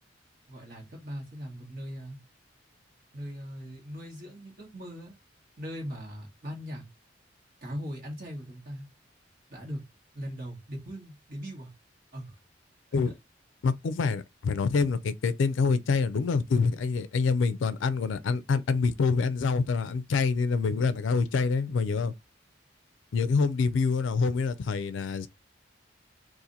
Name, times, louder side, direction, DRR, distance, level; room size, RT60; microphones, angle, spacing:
voice 1, 0.5-2.2 3.1-5.2 5.6-6.8 7.6-8.9 9.5-9.8 10.1-11.7 12.1-12.4 13.0-13.1, equal, 50° right, 1.3 m, -39 dB
voice 2, 13.6-22.1 23.1-25.3, left 4 dB, 80° left, 0.4 m, -26 dB
2.8 x 2.5 x 3.8 m
head